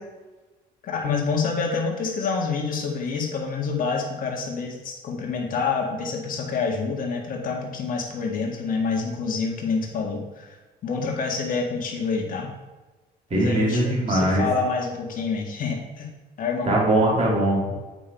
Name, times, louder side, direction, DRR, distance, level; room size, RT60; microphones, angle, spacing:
voice 1, 0.8-10.6 10.8-12.5 13.3-16.1 16.4-16.7, left 4 dB, 55° left, 0 dB, 1.9 m, -27 dB
voice 2, 13.3-14.4 16.6-17.7, right 1 dB, 40° right, -4 dB, 2.6 m, -21 dB
8.3 x 5.4 x 4.5 m, 1.2 s
cardioid pair, 110°, 17 cm